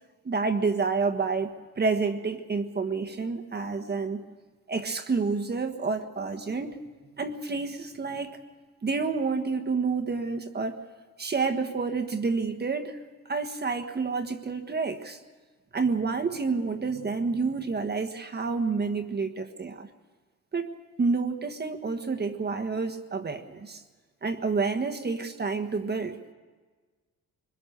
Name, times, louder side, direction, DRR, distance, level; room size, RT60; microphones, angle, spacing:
voice 1, 0.2-4.2 4.7-6.8 7.2-8.4 8.8-10.8 11.2-13.0 13.2-15.2 15.7-19.9 20.5-20.7 21.0-23.8 24.2-26.2, right 4 dB, 35° right, 5 dB, 1.4 m, -29 dB
23.0 x 21.5 x 6.7 m, 1.4 s
cardioid pair, 90°, 30 cm